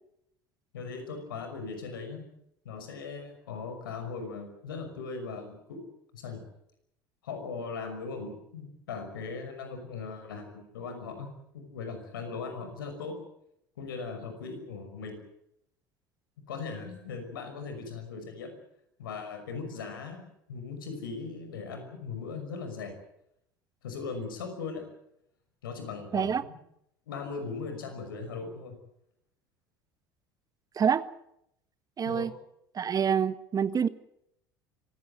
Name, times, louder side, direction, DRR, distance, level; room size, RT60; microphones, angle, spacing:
voice 1, 0.7-2.2 2.6-5.8 6.1-6.4 7.2-11.3 11.5-13.2 13.8-15.2 16.5-18.5 19.0-22.9 23.8-24.9 25.6-26.6 27.1-28.8 32.0-32.3, left 4 dB, 80° left, 5.8 m, -39 dB
voice 2, 32.0-32.3 32.7-33.9, right 7 dB, 35° right, 1.3 m, -26 dB
25.0 x 16.5 x 9.3 m
hypercardioid pair, 70°, 11 cm